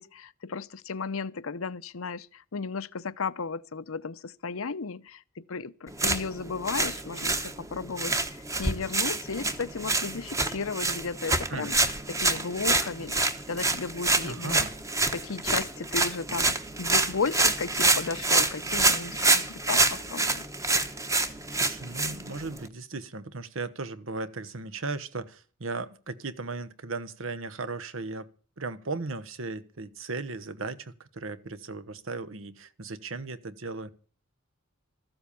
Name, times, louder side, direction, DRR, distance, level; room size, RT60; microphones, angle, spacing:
voice 1, 0.0-11.8 12.1-14.6 15.1-20.4, left 4 dB, 80° left, 0.7 m, -34 dB
sound 1, 5.9-22.7, right 2 dB, 15° right, 1.1 m, -27 dB
voice 2, 14.2-14.7 21.5-28.3 28.6-33.9, right 3 dB, 70° right, 1.1 m, -36 dB
14.5 x 7.9 x 8.5 m
head